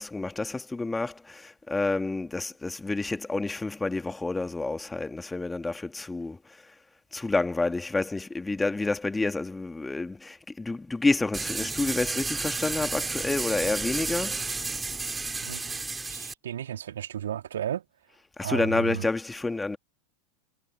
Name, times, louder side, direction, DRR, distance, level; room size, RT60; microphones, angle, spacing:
voice 1, 0.0-6.4 7.1-14.5 18.4-19.8, left 3 dB, 10° left, 2.1 m, -29 dB
sound 1, 11.3-16.3, right 3 dB, 15° right, 2.3 m, -32 dB
voice 2, 16.1-17.8 18.4-19.0, right 10 dB, 70° right, 3.2 m, -33 dB
figure-of-eight pair, 80°, 0 cm